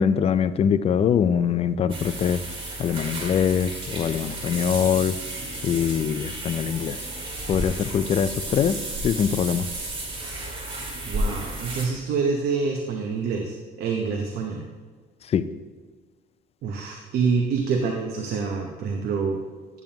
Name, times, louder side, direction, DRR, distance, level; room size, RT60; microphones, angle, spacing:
voice 1, 0.0-2.4 2.8-5.2 5.6-7.0 7.5-8.8 9.0-9.7 15.3-15.5, left 8 dB, 35° left, 13 dB, 0.4 m, -23 dB
sound 1, 1.9-11.9, right 1 dB, 35° right, 2.1 m, -32 dB
voice 2, 11.1-14.6 16.6-19.4, right 5 dB, 70° right, 2 dB, 0.9 m, -26 dB
10.5 x 7.1 x 2.9 m, 1.5 s
cardioid pair, 110°, 17 cm